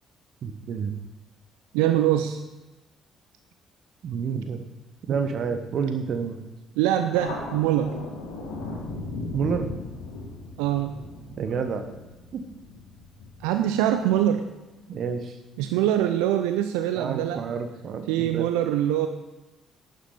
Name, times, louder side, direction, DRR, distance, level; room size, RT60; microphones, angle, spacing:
voice 1, 0.4-0.9 4.0-4.6 5.1-6.4 9.3-9.7 11.4-11.8 12.3-12.4 14.9-15.4 17.0-18.5, right 6 dB, 55° right, 8 dB, 1.2 m, -29 dB
voice 2, 1.7-2.4 6.8-8.0 10.6-10.9 13.4-14.5 15.6-17.4 18.1-19.1, right 12 dB, 70° right, 8 dB, 0.6 m, -23 dB
Thunder, 7.1-14.2, left 2 dB, 70° left, 2.3 m, -37 dB
11.5 x 9.5 x 5.7 m, 1.1 s
figure-of-eight pair, 45°, 0 cm